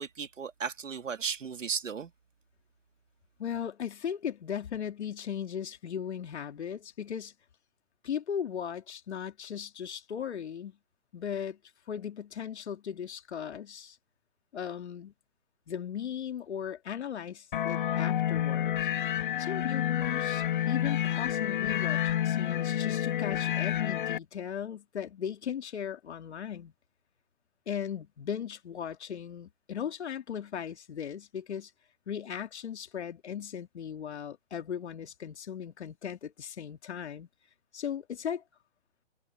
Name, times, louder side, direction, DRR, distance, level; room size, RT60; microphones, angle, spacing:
voice 1, 0.0-2.1, right 6 dB, 85° right, 2.5 m, -35 dB
voice 2, 3.4-7.3 8.0-10.8 11.1-11.6 11.9-14.0 14.5-15.1 15.7-18.9 19.4-26.7 27.7-31.7 32.1-37.3 37.7-38.4, left 8 dB, 65° left, 2.8 m, -37 dB
sound 1, 17.5-24.2, left 10 dB, 45° left, 0.5 m, -29 dB
hypercardioid pair, 150°, 37 cm